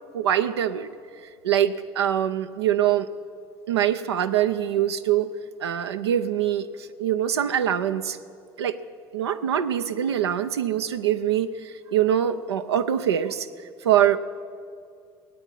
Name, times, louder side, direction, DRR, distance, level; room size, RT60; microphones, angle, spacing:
voice 1, 0.1-0.9 1.2-3.1 3.7-5.3 5.6-8.2 8.6-8.8 9.1-13.5 13.8-14.2, right 10 dB, 85° right, 7 dB, 0.6 m, -24 dB
17.5 x 9.1 x 9.0 m, 2.3 s
hypercardioid pair, 60°, 13 cm